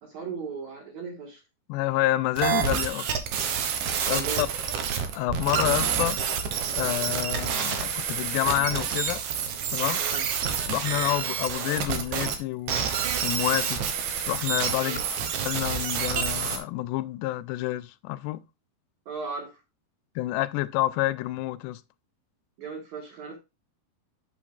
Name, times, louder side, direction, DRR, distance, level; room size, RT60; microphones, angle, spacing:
voice 1, 0.0-1.4 4.1-4.5 10.0-10.3 14.8-15.0 19.1-19.6 22.6-23.4, right 5 dB, 60° right, 2.1 m, -37 dB
voice 2, 1.7-3.1 4.1-4.5 5.2-6.2 6.7-9.2 9.7-10.0 10.7-12.8 13.2-13.8 14.3-15.0 15.5-18.4 20.2-21.8, left 16 dB, 90° left, 2.7 m, -28 dB
sound 1, 2.4-12.4 12.7-16.6, right 7 dB, 80° right, 1.7 m, -28 dB
8.7 x 7.1 x 2.2 m
omnidirectional pair, 4.7 m